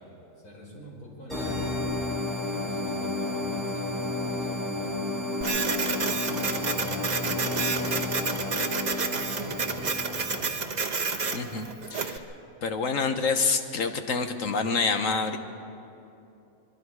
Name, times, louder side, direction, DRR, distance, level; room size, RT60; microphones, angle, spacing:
voice 1, 0.4-1.9 2.3-5.2 5.4-6.1 6.4-8.3 9.4-10.3, left 1 dB, 80° left, -3 dB, 5.7 m, -46 dB
sound 1, 1.3-10.7, left 2 dB, ahead, 6.9 m, -31 dB
Printer, 5.4-12.2, right 4 dB, 30° right, 1.0 m, -30 dB
voice 2, 11.3-12.2 12.6-15.4, left 4 dB, 60° left, 6 dB, 1.5 m, -27 dB
24.5 x 22.5 x 4.8 m, 2.7 s
omnidirectional pair, 1.6 m